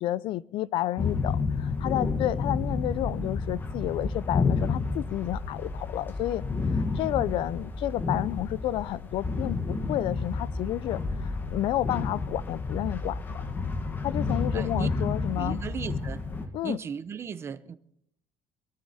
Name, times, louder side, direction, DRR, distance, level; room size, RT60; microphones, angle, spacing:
voice 1, 0.0-6.5 6.7-13.5 14.0-15.6 16.5-16.8, left 14 dB, 50° left, 0.5 m, -31 dB
sound 1, 1.0-16.5, left 4 dB, 20° left, 1.2 m, -30 dB
voice 2, 14.5-14.9 15.4-16.2 16.6-17.8, right 7 dB, 20° right, 0.7 m, -36 dB
23.0 x 13.0 x 4.2 m
cardioid pair, 175°, 11 cm